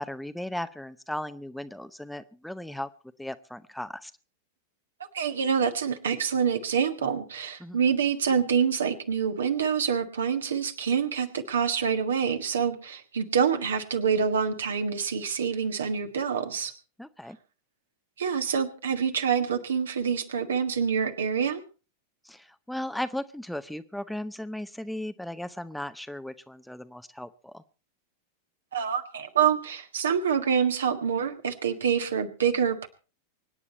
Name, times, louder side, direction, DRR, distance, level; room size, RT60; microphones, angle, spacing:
voice 1, 0.0-2.9 3.2-4.1 7.6-7.8 17.0-17.4 22.2-27.6, left 1 dB, ahead, 12 dB, 0.7 m, -36 dB
voice 2, 5.1-16.7 18.2-21.6 28.7-32.9, right 7 dB, 65° right, 7 dB, 1.7 m, -26 dB
24.5 x 9.8 x 4.2 m, 0.36 s
figure-of-eight pair, 90°, 0 cm